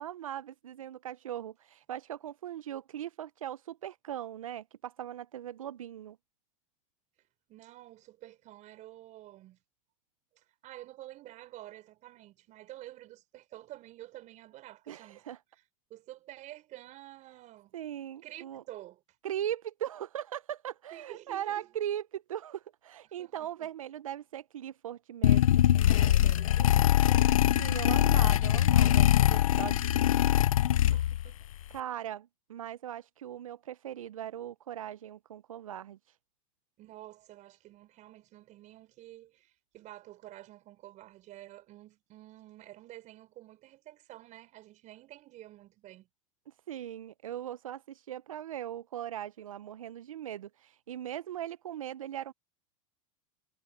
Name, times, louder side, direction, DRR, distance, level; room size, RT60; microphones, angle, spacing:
voice 1, 0.0-6.2 14.9-15.4 17.7-18.6 19.2-25.6 27.6-30.2 31.7-36.1 46.7-52.3, right 11 dB, 85° right, 0.7 m, -39 dB
voice 2, 7.5-9.6 10.4-15.2 15.9-17.7 18.2-19.0 20.9-21.7 23.1-23.7 25.8-27.2 30.9-31.5 36.8-46.1, right 15 dB, 45° right, 4.7 m, -50 dB
sound 1, 25.2-31.3, left 12 dB, 85° left, 0.6 m, -23 dB
hypercardioid pair, 100°, 17 cm